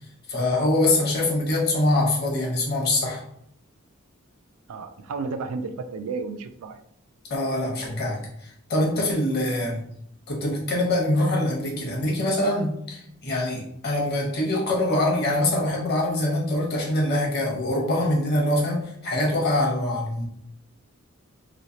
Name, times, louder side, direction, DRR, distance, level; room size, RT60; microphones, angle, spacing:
voice 1, 0.3-3.2 7.3-9.8 10.3-20.3, left 1 dB, 50° left, -2 dB, 1.0 m, -24 dB
voice 2, 4.7-6.8, right 4 dB, 90° right, 8 dB, 0.4 m, -32 dB
3.1 x 2.8 x 2.8 m, 0.70 s
head